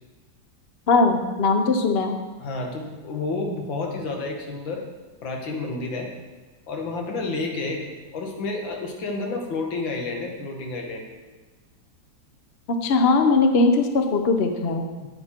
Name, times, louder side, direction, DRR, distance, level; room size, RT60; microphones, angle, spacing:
voice 1, 0.9-2.2 12.8-14.9, left 3 dB, 50° left, 6 dB, 0.7 m, -20 dB
voice 2, 2.4-4.9 5.2-6.1 6.7-11.1 15.0-15.1, left 3 dB, 80° left, 1 dB, 2.1 m, -30 dB
9.0 x 8.6 x 4.4 m, 1.3 s
omnidirectional pair, 2.1 m